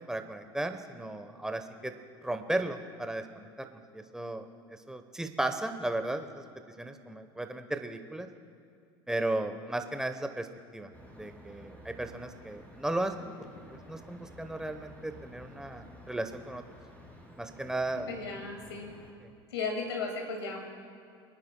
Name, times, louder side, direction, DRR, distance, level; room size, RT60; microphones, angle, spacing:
voice 1, 0.0-1.9 2.2-6.4 6.8-8.3 9.1-10.5 10.7-13.5 13.9-16.6 17.4-18.1 19.2-19.3, right 1 dB, 5° right, 7 dB, 0.9 m, -35 dB
sound 1, 10.9-19.1, left 1 dB, 10° left, 2.7 m, -52 dB
voice 2, 18.1-18.9 19.5-20.6, left 4 dB, 90° left, 2 dB, 2.1 m, -35 dB
26.5 x 9.6 x 2.2 m, 2.5 s
hypercardioid pair, 90°, 13 cm